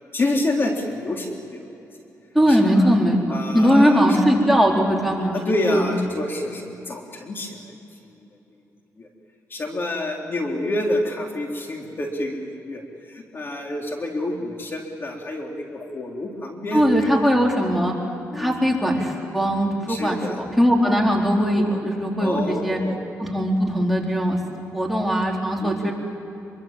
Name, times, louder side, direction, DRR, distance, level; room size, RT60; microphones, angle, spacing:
voice 1, 0.1-1.6 2.5-2.9 3.3-4.4 5.3-7.7 8.0-8.1 9.0-9.1 9.5-17.2 18.3-18.6 19.9-20.4 22.2-23.0 25.6-25.9, left 1 dB, 40° left, 1 dB, 3.9 m, -28 dB
voice 2, 2.3-5.4 5.7-5.9 16.7-17.9 18.3-22.8 23.2-24.4 24.7-25.9, equal, ahead, -1 dB, 4.1 m, -20 dB
26.0 x 24.0 x 7.6 m, 2.9 s
cardioid pair, 90°, 6 cm